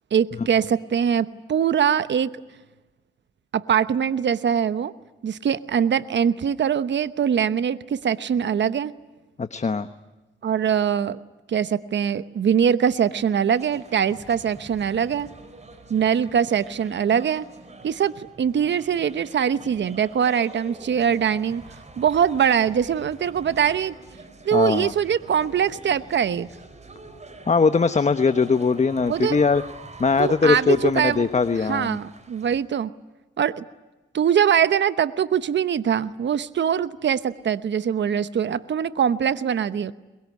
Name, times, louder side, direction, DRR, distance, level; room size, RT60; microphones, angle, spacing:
voice 1, 0.1-2.3 3.5-4.9 5.2-8.9 10.4-11.2 11.5-15.3 15.9-17.5 17.8-21.6 22.0-23.9 24.4-26.5 29.1-29.4 30.2-31.3 31.7-32.9 33.4-33.6 34.1-39.9, right 8 dB, 65° right, 14 dB, 1.0 m, -22 dB
voice 2, 9.4-9.9 24.5-24.9 27.5-29.6 30.0-32.0, left 4 dB, 35° left, 11 dB, 1.1 m, -20 dB
sound 1, 13.5-32.6, right 3 dB, 35° right, 4.7 m, -45 dB
23.0 x 22.5 x 9.8 m, 1.1 s
cardioid pair, 75°, 20 cm